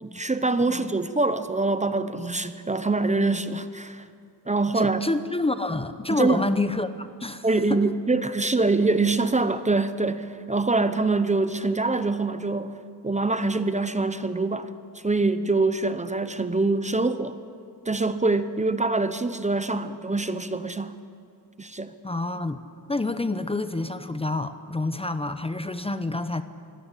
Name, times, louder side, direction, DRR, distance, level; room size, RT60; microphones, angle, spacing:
voice 1, 0.0-4.0 4.5-5.0 6.1-6.5 7.4-12.7 13.0-14.7 15.0-17.4 17.9-20.9 21.6-21.9, right 3 dB, 20° right, 11 dB, 0.8 m, -24 dB
voice 2, 0.5-0.9 4.7-7.8 22.0-22.6 22.9-26.4, left 2 dB, 15° left, 11 dB, 0.7 m, -28 dB
23.0 x 17.0 x 8.3 m, 2.6 s
wide cardioid pair, 120°, 38 cm